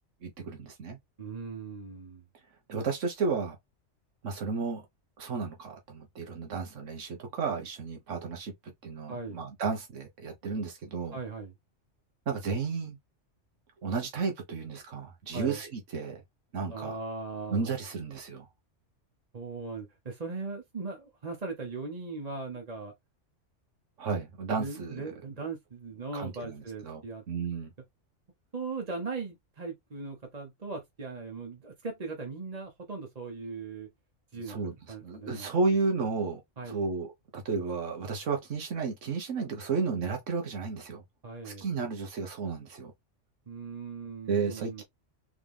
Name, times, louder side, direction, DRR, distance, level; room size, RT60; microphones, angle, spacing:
voice 1, 0.2-1.0 2.7-3.6 4.2-4.8 5.2-8.5 8.8-11.2 12.3-13.0 13.8-16.2 16.5-17.0 17.5-18.5 24.0-25.2 26.1-27.7 34.3-36.4 36.7-41.0 41.4-42.9 44.3-44.8, right 4 dB, 80° right, 1.5 m, -33 dB
voice 2, 1.2-2.2 9.1-9.4 11.1-11.5 15.3-15.6 16.7-17.7 19.3-22.9 24.6-27.2 28.5-33.9 34.3-34.6 34.9-35.5 36.6-36.9 41.2-41.6 43.5-44.8, right 4 dB, 35° right, 1.0 m, -39 dB
3.8 x 3.6 x 3.4 m
omnidirectional pair, 1.3 m